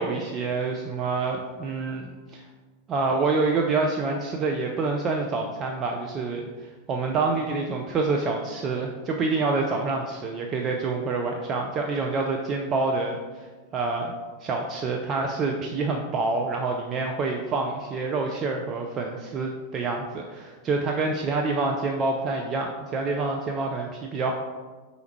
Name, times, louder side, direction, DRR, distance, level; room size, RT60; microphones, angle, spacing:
voice 1, 0.0-2.4 2.9-13.5 13.7-14.1 14.4-24.3, right 3 dB, 30° right, 1 dB, 0.3 m, -27 dB
4.6 x 3.0 x 3.0 m, 1.4 s
figure-of-eight pair, 90°, 0 cm